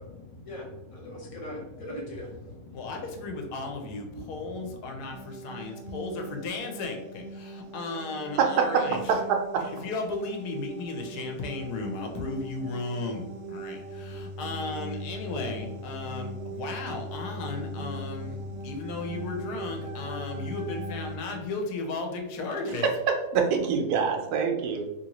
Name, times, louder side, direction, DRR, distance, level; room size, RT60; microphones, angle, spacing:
voice 1, 0.0-5.3 17.9-19.1 19.8-20.1, left 1 dB, 35° left, -3 dB, 0.5 m, -43 dB
voice 2, 2.7-9.2 9.6-18.4 18.6-22.9, left 3 dB, 85° left, 3 dB, 1.2 m, -35 dB
sound 1, 5.1-21.2, equal, 65° right, 0.6 m, -39 dB
voice 3, 8.4-9.6 23.3-24.8, right 6 dB, 80° right, 3 dB, 1.1 m, -25 dB
2.9 x 2.7 x 2.8 m, 0.98 s
omnidirectional pair, 1.7 m